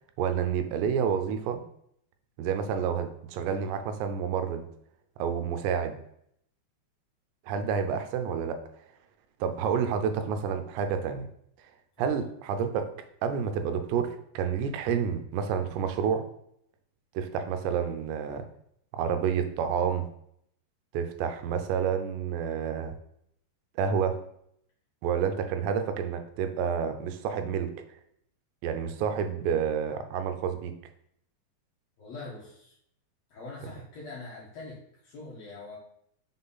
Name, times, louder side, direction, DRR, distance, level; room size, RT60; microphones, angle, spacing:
voice 1, 0.2-1.6 2.4-4.7 5.2-6.0 7.5-8.6 9.4-11.3 12.0-12.9 13.2-16.3 17.2-18.5 18.9-20.1 20.9-22.9 23.8-24.2 25.0-27.7 28.6-30.7, right 7 dB, 85° right, 7 dB, 2.8 m, -29 dB
voice 2, 32.0-32.7 33.3-35.7, left 3 dB, 90° left, -5 dB, 1.4 m, -43 dB
6.2 x 3.8 x 4.0 m, 0.71 s
omnidirectional pair, 4.9 m